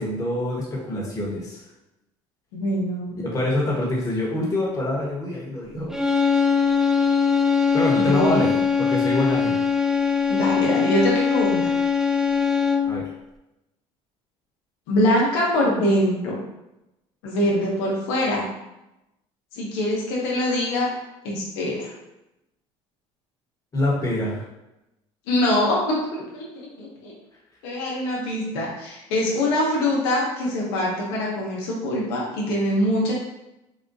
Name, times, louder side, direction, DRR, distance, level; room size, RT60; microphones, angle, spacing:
voice 1, 0.0-1.6 3.2-6.0 7.7-8.5 8.8-9.5 12.8-13.1 23.7-24.4, left 1 dB, 25° left, -4 dB, 1.2 m, -25 dB
voice 2, 2.5-3.2 8.0-8.5 10.3-11.7 14.9-16.4 17.2-18.5 19.5-20.9 21.2-21.9 25.3-27.1 27.6-33.1, left 1 dB, 90° left, -4 dB, 0.9 m, -23 dB
sound 1, 5.9-13.1, left 6 dB, 5° right, 0.3 m, -21 dB
4.0 x 2.3 x 2.6 m, 0.92 s
supercardioid pair, 95°, 12 cm